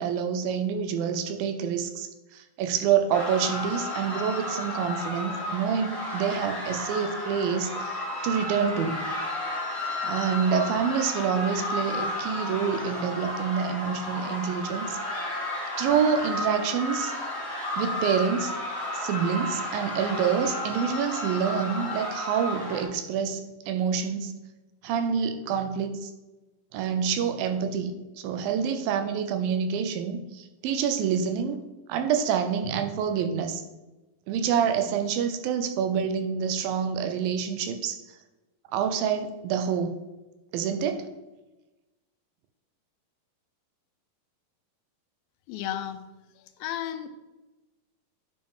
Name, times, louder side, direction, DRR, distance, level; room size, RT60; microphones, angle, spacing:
voice 1, 0.0-9.0 10.0-15.0 15.8-17.2 17.8-18.6 18.9-24.3 24.8-26.1 26.7-31.6 31.9-33.6 34.3-38.0 38.7-39.9 40.5-41.1, right 7 dB, 85° right, 8 dB, 2.4 m, -27 dB
sound 1, 3.1-22.8, left 1 dB, 10° left, 1.6 m, -33 dB
voice 2, 45.5-46.0 46.6-47.1, left 11 dB, 90° left, 9 dB, 2.5 m, -32 dB
11.0 x 5.2 x 3.7 m, 1.1 s
omnidirectional pair, 4.1 m